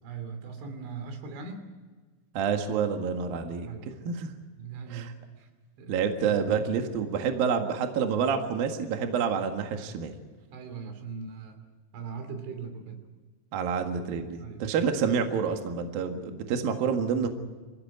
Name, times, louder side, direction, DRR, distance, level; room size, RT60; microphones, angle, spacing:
voice 1, 0.0-1.7 3.6-4.1 4.6-5.1 5.4-5.5 5.8-5.9 6.2-6.4 10.5-11.6 11.9-13.0 14.4-14.6, right 5 dB, 85° right, 7 dB, 5.5 m, -40 dB
voice 2, 2.3-3.7 4.0-4.3 4.9-5.1 5.9-10.1 13.5-17.3, right 6 dB, 60° right, 5 dB, 3.2 m, -28 dB
26.0 x 16.0 x 9.5 m, 1.4 s
omnidirectional pair, 5.3 m